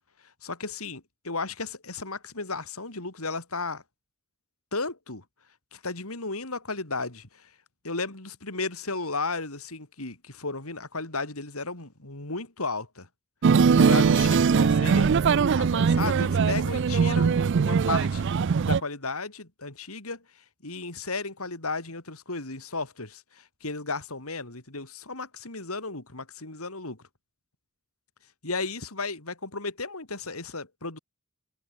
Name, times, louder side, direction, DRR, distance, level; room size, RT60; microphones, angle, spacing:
voice 1, 0.4-3.8 4.7-5.2 5.7-7.5 7.8-13.1 13.7-15.2 15.6-18.3 18.6-20.2 20.6-27.0 28.4-31.0, left 3 dB, 90° left, 4.8 m, -34 dB
sound 1, 13.4-18.8, right 5 dB, 55° right, 0.4 m, -21 dB
head